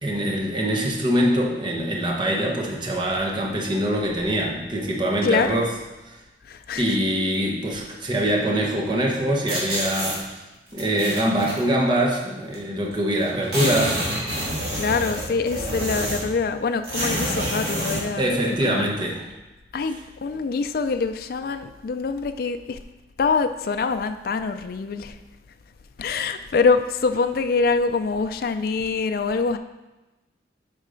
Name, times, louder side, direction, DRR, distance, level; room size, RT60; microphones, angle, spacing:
voice 1, 0.0-5.7 6.0-6.2 6.8-10.4 10.7-14.0 18.2-19.2, right 1 dB, 25° right, -1 dB, 0.9 m, -23 dB
voice 2, 5.2-5.6 6.4-7.0 14.7-18.9 19.7-22.8 23.2-25.2 26.0-29.6, left 4 dB, 50° left, 8 dB, 0.3 m, -24 dB
sound 1, 9.5-10.2 10.8-11.6 12.5-12.6 12.9-13.0 13.2-16.4 16.8-18.1, equal, 60° right, 2.2 m, -27 dB
8.1 x 5.4 x 3.8 m, 1.1 s
head